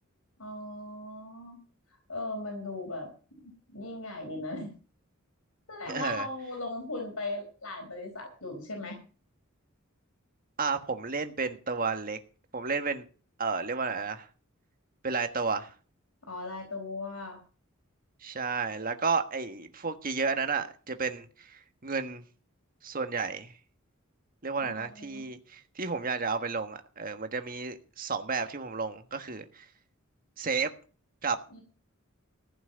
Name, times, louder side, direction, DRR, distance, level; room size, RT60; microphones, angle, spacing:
voice 1, 0.4-1.6 2.1-3.1 3.7-4.7 5.7-9.0 16.2-17.4 24.6-25.3 31.5-31.6, left 2 dB, 85° left, 4.4 m, -38 dB
voice 2, 5.9-6.3 10.6-12.2 12.5-13.0 13.4-14.3 15.0-15.7 18.2-22.2 22.8-23.5 24.4-29.6 30.4-30.7 31.2-31.4, right 4 dB, 45° right, 1.5 m, -32 dB
15.5 x 6.2 x 8.7 m
head